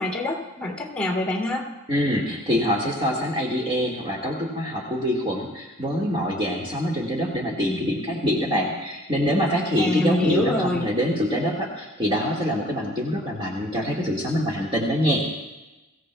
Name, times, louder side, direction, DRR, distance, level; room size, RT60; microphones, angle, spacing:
voice 1, 0.0-1.6 9.8-10.9, left 1 dB, 5° left, 0 dB, 2.4 m, -25 dB
voice 2, 1.9-15.2, equal, 25° right, -3 dB, 1.7 m, -25 dB
23.0 x 16.0 x 2.2 m, 1.1 s
head